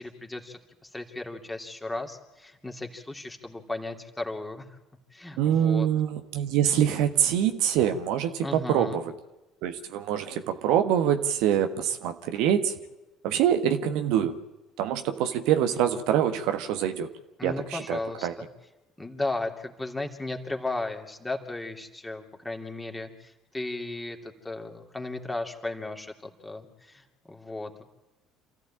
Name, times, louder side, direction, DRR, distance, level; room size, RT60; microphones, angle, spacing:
voice 1, 0.0-4.7 5.1-5.9 8.4-9.0 17.4-18.4 19.0-27.8, left 2 dB, 10° left, 3 dB, 3.0 m, -35 dB
voice 2, 5.4-9.1 9.6-12.8 13.2-14.4 14.8-17.1 17.4-18.3, right 9 dB, 60° right, 7 dB, 1.3 m, -25 dB
28.0 x 14.5 x 8.8 m, 1.0 s
figure-of-eight pair, 60°, 0 cm